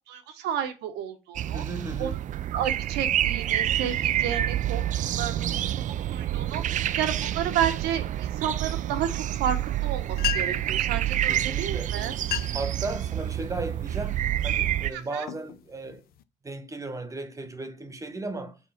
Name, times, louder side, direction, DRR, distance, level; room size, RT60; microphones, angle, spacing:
voice 1, 0.1-1.6 2.0-2.1 2.5-4.8 5.1-5.8 6.1-12.2 14.9-15.2, right 9 dB, 90° right, 1.3 m, -31 dB
sound 1, 1.4-14.9, right 12 dB, 50° right, 0.4 m, -28 dB
voice 2, 1.5-2.2 11.2-12.0 12.5-16.0 16.4-18.6, right 2 dB, 20° right, 1.1 m, -36 dB
sound 2, 9.9-10.0 10.1-10.8 11.6-11.8 12.1-12.7 13.2-13.6 14.2-14.5 15.0-16.2, left 12 dB, 65° left, 0.6 m, -33 dB
7.0 x 4.2 x 5.8 m
cardioid pair, 110°, 17 cm